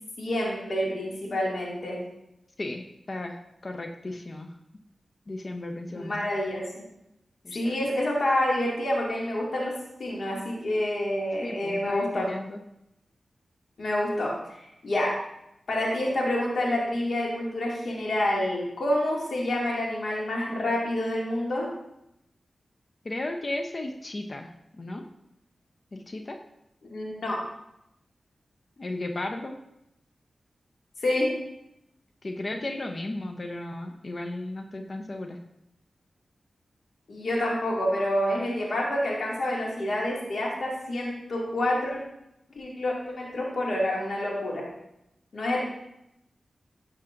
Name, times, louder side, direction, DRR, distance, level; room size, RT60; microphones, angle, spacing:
voice 1, 0.2-2.0 5.9-6.8 7.5-12.3 13.8-15.2 15.7-21.7 26.9-27.4 31.0-31.3 37.1-42.0 42.5-44.7 45.3-45.6, left 1 dB, 75° left, -4 dB, 2.2 m, -28 dB
voice 2, 2.6-4.5 5.3-6.2 7.4-7.8 11.4-12.6 23.0-25.0 25.9-26.4 28.8-29.6 32.2-35.4, left 2 dB, 50° left, 4 dB, 0.7 m, -35 dB
11.5 x 6.4 x 2.5 m, 0.83 s
cardioid pair, 50°, 0 cm